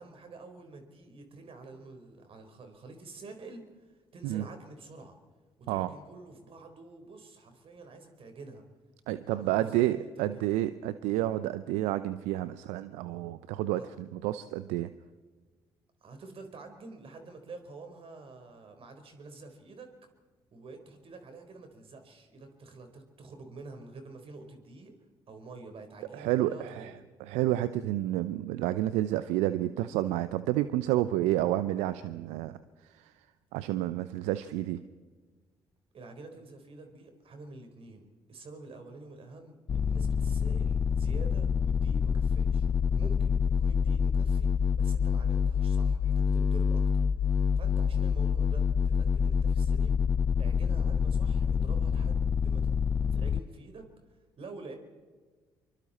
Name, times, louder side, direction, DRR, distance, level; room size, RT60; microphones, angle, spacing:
voice 1, 0.0-5.1 5.6-8.6 9.2-10.6 13.8-13.9 16.0-19.9 20.5-24.9 25.3-27.0 35.9-46.8 47.4-50.0 50.4-52.7 53.1-53.9 54.4-54.8, right 3 dB, 55° right, 5 dB, 4.4 m, -48 dB
voice 2, 9.1-14.9 26.1-26.9 27.2-32.6 32.9-33.1 33.5-34.8, right 14 dB, 75° right, 14 dB, 0.7 m, -30 dB
sound 1, 39.7-53.4, left 6 dB, 40° left, 0.6 m, -27 dB
26.0 x 24.0 x 4.3 m, 1.4 s
hypercardioid pair, 45°, 11 cm